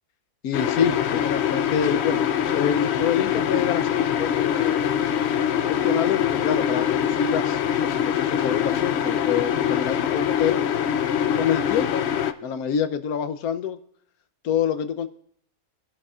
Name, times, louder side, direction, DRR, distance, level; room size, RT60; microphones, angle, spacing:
voice 1, 0.4-2.2 2.5-4.9 5.7-10.6 11.3-12.1 12.4-13.8 14.4-15.1, left 8 dB, 85° left, 10 dB, 1.2 m, -26 dB
sound 1, 0.5-12.3, left 9 dB, 60° left, 0.8 m, -24 dB
24.5 x 11.0 x 2.4 m, 0.65 s
omnidirectional pair, 1.5 m